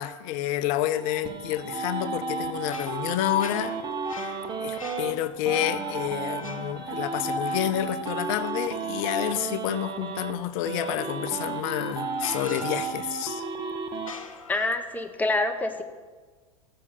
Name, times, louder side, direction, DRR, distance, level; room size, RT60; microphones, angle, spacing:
voice 1, 0.0-3.8 4.2-4.3 4.6-13.4, left 13 dB, 45° left, 13 dB, 0.7 m, -29 dB
sound 1, 0.8-5.1 5.5-10.3 10.6-14.1, right 5 dB, 25° right, 1.2 m, -33 dB
sound 2, 2.4-9.0 11.3-11.4 12.1-13.4 13.9-15.1, left 5 dB, 80° left, 1.0 m, -41 dB
voice 2, 14.5-15.8, left 2 dB, 10° left, 6 dB, 1.1 m, -26 dB
14.5 x 6.7 x 6.1 m, 1.4 s
figure-of-eight pair, 85°, 17 cm